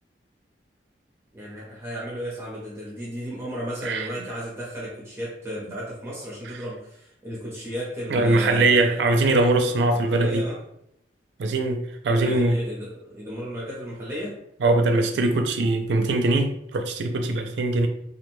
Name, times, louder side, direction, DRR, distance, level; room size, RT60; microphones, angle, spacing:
voice 1, 1.3-9.0 9.6-10.6 12.2-14.4, equal, 15° right, -6 dB, 0.6 m, -34 dB
voice 2, 8.1-10.5 11.4-12.6 14.6-17.9, right 2 dB, 80° right, 5 dB, 0.4 m, -22 dB
2.4 x 2.2 x 3.0 m, 0.74 s
head